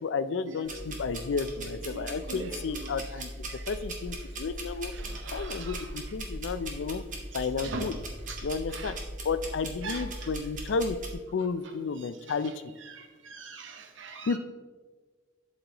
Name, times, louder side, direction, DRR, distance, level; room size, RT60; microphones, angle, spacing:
voice 1, 0.0-4.9 5.3-7.0 7.3-7.9 8.4-8.9 9.2-11.0 11.3-12.5 14.3-14.4, left 4 dB, 75° left, 13 dB, 0.4 m, -32 dB
sound 1, 0.6-11.1, right 1 dB, 45° right, 1.2 m, -39 dB
voice 2, 1.9-2.9 3.5-3.7 4.9-5.9 7.6-7.9 8.3-8.4 8.7-9.0 9.8-10.0 12.0-12.5 12.8-14.4, right 3 dB, 85° right, 5 dB, 0.8 m, -42 dB
11.5 x 5.3 x 2.9 m, 1.4 s
head